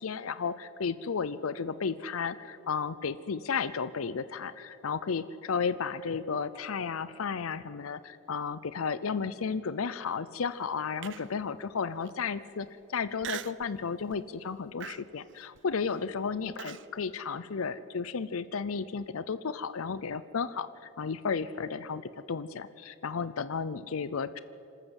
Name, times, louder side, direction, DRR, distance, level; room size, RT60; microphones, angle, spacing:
voice 1, 0.0-20.7 21.0-24.4, left 5 dB, 85° left, 15 dB, 0.6 m, -33 dB
Human voice, 11.0-11.5 12.0-12.1 13.2-13.7 14.1-14.4 14.8-16.9, right 8 dB, 55° right, 0.5 m, -41 dB
26.0 x 13.0 x 8.1 m, 2.8 s
head